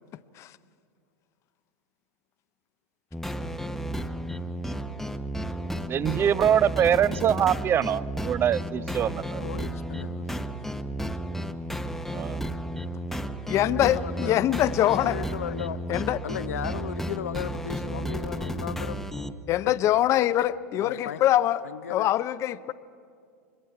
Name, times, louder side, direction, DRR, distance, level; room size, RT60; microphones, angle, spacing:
sound 1, 3.1-19.3, equal, 5° left, 0.8 m, -33 dB
voice 1, 5.9-9.4 12.1-12.5, right 9 dB, 30° right, 0.5 m, -24 dB
voice 2, 9.4-10.5 13.6-14.5 14.9-15.8 16.2-19.0 19.5-19.9 20.7-21.2 21.6-22.1, left 9 dB, 80° left, 0.7 m, -36 dB
voice 3, 13.5-15.2 15.9-16.2 19.5-21.6 21.9-22.7, left 13 dB, 40° left, 0.5 m, -23 dB
26.5 x 22.0 x 4.7 m
hypercardioid pair, 100°, 8 cm